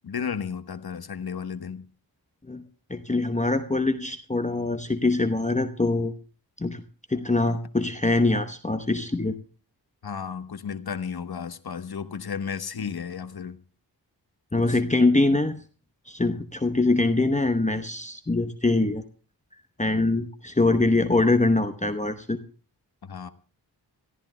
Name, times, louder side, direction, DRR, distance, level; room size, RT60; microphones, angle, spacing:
voice 1, 0.0-1.8 10.0-13.6 14.6-14.8 16.3-16.4 23.0-23.3, left 6 dB, 60° left, 1.1 m, -33 dB
voice 2, 2.9-6.1 6.6-6.8 7.1-9.3 14.5-15.6 16.1-19.0 19.8-22.4, left 2 dB, 15° left, 0.9 m, -23 dB
27.0 x 14.0 x 2.2 m
wide cardioid pair, 70°, 43 cm